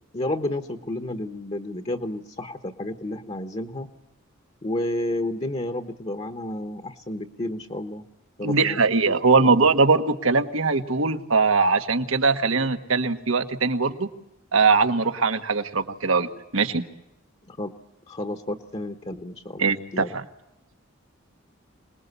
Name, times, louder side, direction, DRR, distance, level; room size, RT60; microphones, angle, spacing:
voice 1, 0.1-3.9 4.6-8.0 8.4-8.8 9.4-9.5 17.5-17.7 18.1-19.6 19.9-20.1, left 1 dB, 30° left, 7 dB, 1.2 m, -31 dB
voice 2, 8.4-14.1 14.5-16.3 16.5-16.8 19.6-20.2, right 4 dB, 85° right, 8 dB, 1.6 m, -21 dB
26.0 x 20.5 x 8.2 m, 0.86 s
head